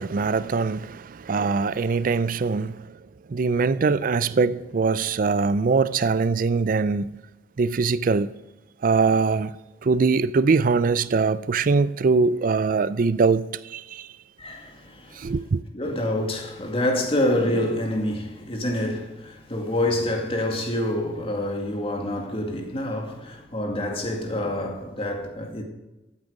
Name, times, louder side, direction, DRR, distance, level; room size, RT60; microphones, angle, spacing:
voice 1, 0.0-2.9 3.3-7.1 7.6-8.3 8.8-9.6 9.8-14.1 15.2-15.6, right 4 dB, 50° right, 0.4 m, -22 dB
voice 2, 14.4-15.3 15.7-25.6, left 1 dB, 35° left, 2.1 m, -27 dB
14.0 x 8.9 x 5.2 m
head